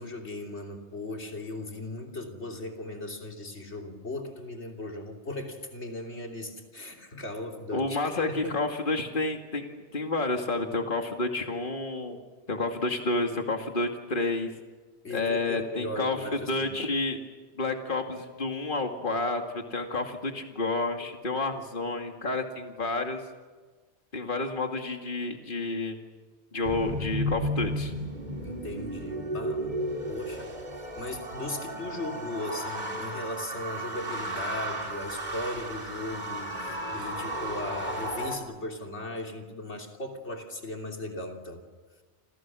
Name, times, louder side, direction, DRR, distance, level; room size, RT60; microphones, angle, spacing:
voice 1, 0.0-8.6 15.0-16.5 28.4-30.5 31.0-41.6, left 2 dB, 90° left, 2 dB, 3.5 m, -37 dB
voice 2, 7.7-12.2 12.5-14.5 15.1-16.2 16.5-17.2 17.6-23.2 24.1-26.0 26.5-27.9, left 2 dB, 50° left, 3 dB, 2.4 m, -30 dB
sound 1, 26.6-38.4, right 1 dB, 40° right, 3.2 m, -34 dB
29.0 x 28.5 x 6.3 m, 1.4 s
omnidirectional pair, 1.1 m